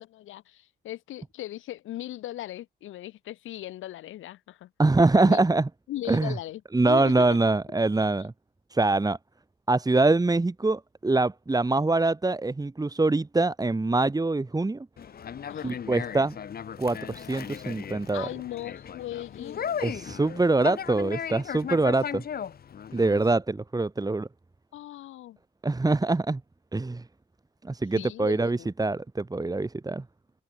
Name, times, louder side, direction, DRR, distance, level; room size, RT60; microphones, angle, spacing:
voice 1, 0.0-4.7 5.2-5.4 5.9-7.4 15.5-15.8 18.1-19.6 24.7-25.4 27.9-28.7, left 14 dB, 85° left, 5.2 m, -38 dB
voice 2, 4.8-5.7 6.1-6.3 6.7-8.3 8.7-9.2 9.7-14.9 15.6-16.4 16.8-18.3 19.8-22.2 22.9-24.3 25.6-26.4 26.7-27.0 27.6-30.0, right 2 dB, 20° right, 4.8 m, -24 dB
Conversation, 15.0-23.3, left 8 dB, 50° left, 2.0 m, -37 dB
open air
cardioid pair, 90°, 20 cm